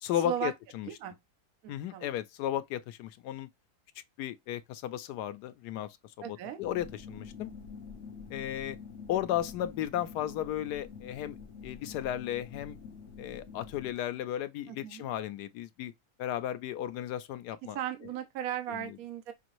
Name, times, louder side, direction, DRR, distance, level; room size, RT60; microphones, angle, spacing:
voice 1, 0.0-0.9 1.7-3.5 4.2-7.5 8.3-8.8 9.1-11.4 11.6-12.8 13.2-15.9 16.2-17.8 18.7-18.9, left 11 dB, 85° left, 1.2 m, -35 dB
voice 2, 1.6-2.1 6.2-6.6 14.7-15.1 17.7-19.3, right 10 dB, 70° right, 1.0 m, -36 dB
sound 1, 6.6-13.9, left 6 dB, 55° left, 0.8 m, -47 dB
5.5 x 2.6 x 3.0 m
omnidirectional pair, 1.7 m